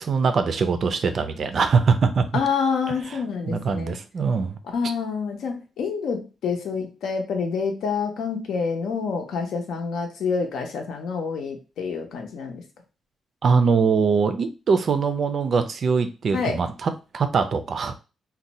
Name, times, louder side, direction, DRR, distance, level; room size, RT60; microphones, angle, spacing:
voice 1, 0.0-2.3 3.5-4.6 13.4-17.9, right 5 dB, 40° right, 9 dB, 0.4 m, -22 dB
voice 2, 2.3-4.0 4.7-12.6 16.3-16.6, left 5 dB, 75° left, 3 dB, 0.8 m, -27 dB
2.6 x 2.1 x 4.0 m, 0.31 s
wide cardioid pair, 165°, 0 cm